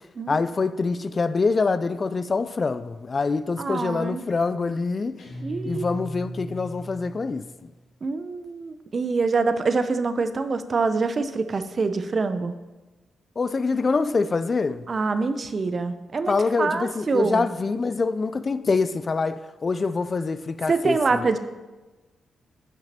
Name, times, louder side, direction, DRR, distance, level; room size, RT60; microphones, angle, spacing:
voice 1, 0.3-5.2 5.6-7.7 13.4-14.9 16.3-21.3, left 4 dB, 45° left, 0.4 m, -25 dB
voice 2, 3.6-4.2 5.4-6.0 8.0-12.5 14.9-17.5 20.7-21.4, right 4 dB, 50° right, 0.6 m, -25 dB
Guitar, 5.2-7.8, equal, 75° left, 1.8 m, -37 dB
14.5 x 5.8 x 2.9 m
hypercardioid pair, 45°, 0 cm